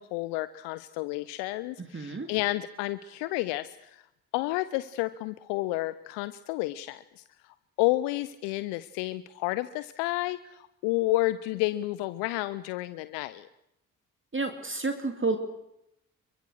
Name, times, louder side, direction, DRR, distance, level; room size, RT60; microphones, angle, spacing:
voice 1, 0.0-4.0 4.3-13.5, left 18 dB, 70° left, 15 dB, 0.9 m, -31 dB
voice 2, 1.8-2.3 14.3-15.4, right 3 dB, 25° right, 6 dB, 2.8 m, -30 dB
27.5 x 23.5 x 6.6 m, 0.83 s
figure-of-eight pair, 40°, 44 cm